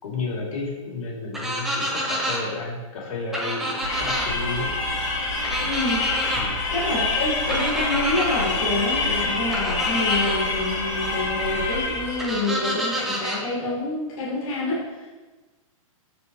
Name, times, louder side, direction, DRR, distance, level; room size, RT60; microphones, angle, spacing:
voice 1, 0.0-4.7 6.3-6.6, left 3 dB, 75° left, -4 dB, 3.0 m, -32 dB
sound 1, 1.3-2.4 3.3-4.3 5.4-6.4 7.5-8.4 9.5-10.4 12.2-13.4, equal, ahead, 0.7 m, -28 dB
sound 2, 3.6-11.6, right 3 dB, 75° right, 1.9 m, -38 dB
sound 3, 3.8-12.4, left 3 dB, 55° left, 2.5 m, -26 dB
voice 2, 5.6-6.0 6.7-15.1, left 2 dB, 25° left, -8 dB, 1.8 m, -27 dB
14.0 x 5.1 x 3.1 m, 1.3 s
hypercardioid pair, 175°, 18 cm